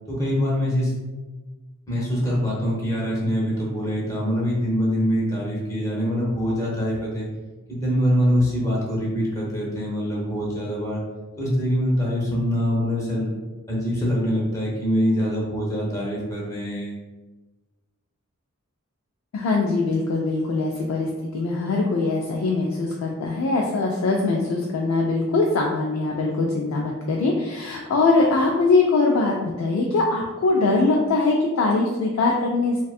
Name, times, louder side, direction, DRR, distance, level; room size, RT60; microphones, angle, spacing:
voice 1, 0.1-0.9 1.9-7.3 7.7-11.0 11.4-13.3 13.7-16.9, equal, 15° left, -5 dB, 0.6 m, -24 dB
voice 2, 19.3-32.8, left 3 dB, 75° left, -1 dB, 0.3 m, -22 dB
2.6 x 2.2 x 2.3 m, 1.2 s
head